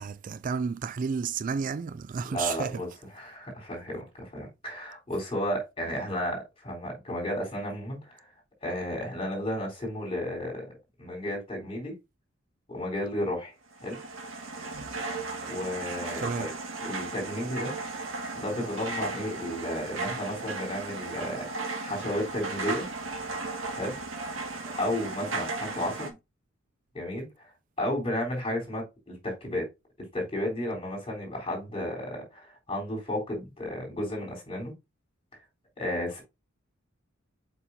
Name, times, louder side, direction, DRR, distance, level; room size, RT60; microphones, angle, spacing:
voice 1, 0.0-2.8 16.2-16.5, right 5 dB, 40° right, 0.3 m, -31 dB
voice 2, 2.3-2.9 3.1-8.2 8.6-11.9 12.7-13.5 13.8-14.0 15.5-16.5 16.8-17.7 18.3-22.9 23.7-24.0 24.8-26.2 26.9-27.5 27.8-29.7 30.0-34.7 35.8-36.2, left 1 dB, 30° left, 3.7 m, -33 dB
sound 1, 13.7-26.1, right 3 dB, 75° right, 1.7 m, -35 dB
7.1 x 5.2 x 2.7 m
head